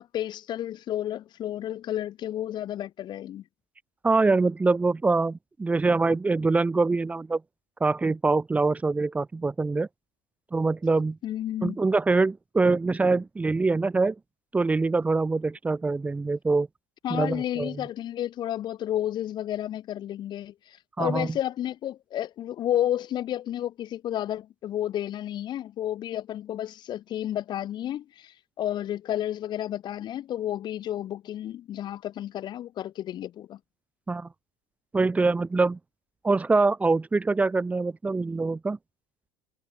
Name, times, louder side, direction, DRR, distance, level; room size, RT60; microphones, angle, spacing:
voice 1, 0.0-3.4 11.2-11.8 17.0-33.6, left 12 dB, 40° left, 3.6 m, -31 dB
voice 2, 4.0-7.4 7.8-9.9 10.5-11.2 11.6-14.2 14.5-16.7 17.1-17.8 21.0-21.3 34.1-34.3 34.9-35.8 36.2-38.8, right 3 dB, 10° right, 2.3 m, -24 dB
cardioid pair, 145°, 12 cm